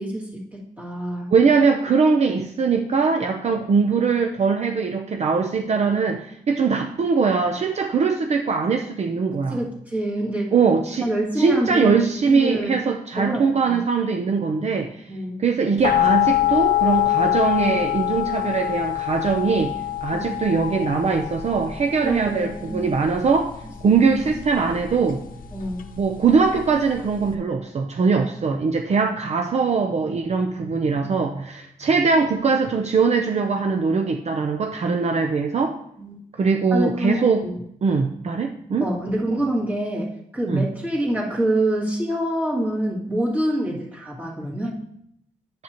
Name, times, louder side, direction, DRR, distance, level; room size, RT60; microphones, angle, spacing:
voice 1, 0.0-1.3 9.5-10.5 11.0-11.9 12.2-12.8 13.2-13.8 15.1-15.4 20.1-20.4 22.0-22.8 25.5-25.9 31.0-31.1 36.0-36.2 36.7-37.6 38.8-44.8, right 1 dB, 10° right, -5 dB, 2.3 m, -26 dB
voice 2, 1.3-9.6 10.5-11.1 11.4-15.0 15.4-23.5 23.8-25.2 26.0-35.8 36.4-37.4 37.8-38.8 40.5-40.7, right 5 dB, 50° right, 5 dB, 0.6 m, -21 dB
sound 1, 15.8-27.3, left 14 dB, 75° left, 0.8 m, -25 dB
10.0 x 7.5 x 2.9 m, 0.74 s
wide cardioid pair, 135°, 14 cm